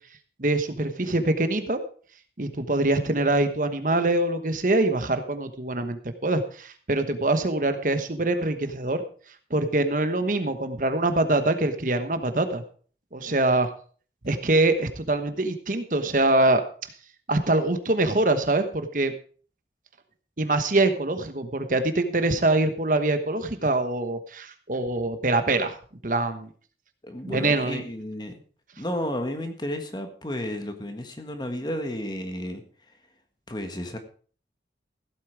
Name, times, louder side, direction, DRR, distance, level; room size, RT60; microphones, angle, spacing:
voice 1, 0.4-1.8 2.4-9.0 9.5-12.6 13.1-13.7 14.2-16.6 17.3-19.1 20.4-25.8 26.0-26.5 27.2-27.8, right 2 dB, 50° right, 9 dB, 1.2 m, -24 dB
voice 2, 27.0-28.4 28.8-32.6 33.5-34.0, left 1 dB, 25° left, 6 dB, 1.6 m, -32 dB
15.5 x 8.5 x 4.7 m, 0.42 s
head